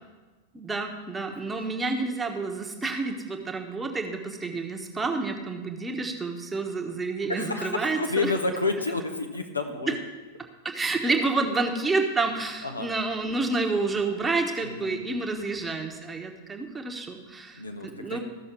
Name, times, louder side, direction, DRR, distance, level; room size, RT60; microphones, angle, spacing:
voice 1, 0.5-8.3 9.9-10.0 10.6-18.2, right 3 dB, 10° right, 3 dB, 1.2 m, -29 dB
voice 2, 7.3-10.0 12.6-12.9 14.6-15.5 17.6-18.2, left 3 dB, 80° left, 4 dB, 1.0 m, -30 dB
14.0 x 6.2 x 4.6 m, 1.2 s
figure-of-eight pair, 90°, 0 cm